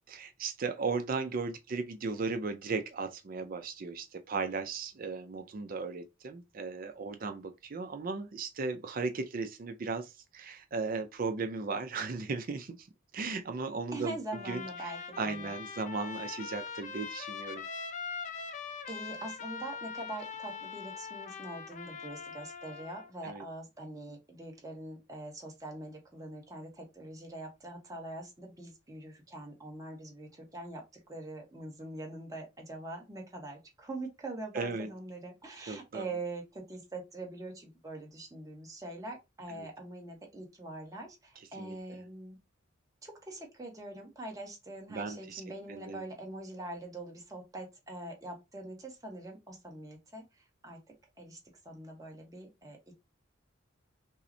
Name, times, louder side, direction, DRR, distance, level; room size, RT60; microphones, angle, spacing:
voice 1, 0.1-12.9 13.1-14.1 14.5-14.9 15.2-17.7 23.2-23.4 34.5-34.9 35.7-36.1 39.6-39.7 41.6-41.8 44.9-45.4 45.7-46.0, right 4 dB, 45° right, 0.4 m, -36 dB
voice 2, 13.9-15.5 18.4-18.5 18.9-30.8 31.1-42.4 43.0-50.8 51.2-51.4 51.6-52.9, right 2 dB, 20° right, 1.0 m, -43 dB
Trumpet, 14.3-23.1, left 6 dB, 40° left, 0.5 m, -42 dB
5.4 x 2.1 x 2.6 m
head